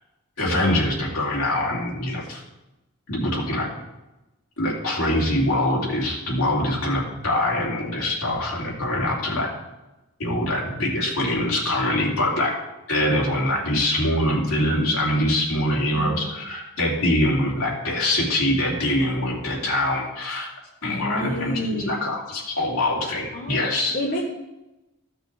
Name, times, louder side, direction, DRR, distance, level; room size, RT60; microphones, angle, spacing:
voice 1, 0.4-2.4 3.1-3.7 4.6-9.5 10.2-12.5 12.9-20.5 20.8-23.9, left 1 dB, 75° left, -3 dB, 2.8 m, -24 dB
voice 2, 16.0-16.3 20.8-22.0 23.3-24.2, left 1 dB, 35° left, -3 dB, 1.4 m, -29 dB
15.0 x 6.3 x 3.4 m, 0.99 s
head